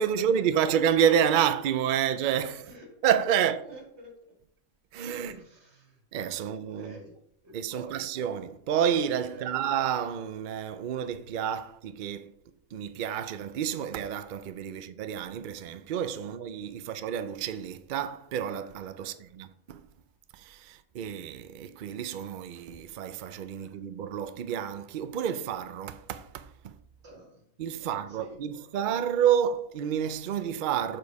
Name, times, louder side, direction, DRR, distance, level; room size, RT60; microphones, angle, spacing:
voice 1, 0.0-2.6 3.0-3.6 4.9-5.3 6.1-6.9 7.5-12.3 12.7-19.8 20.4-26.7 27.6-31.0, right 9 dB, 80° right, 0.4 m, -29 dB
voice 2, 2.6-3.0 3.3-4.1 5.2-6.0 6.4-7.2 7.4-8.1 9.3-9.6 14.7-14.8 16.8-16.9 19.0-19.1 23.6-23.8 27.0-27.4 27.8-29.3, right 2 dB, 50° right, 2.3 m, -50 dB
7.1 x 4.7 x 4.6 m
omnidirectional pair, 1.5 m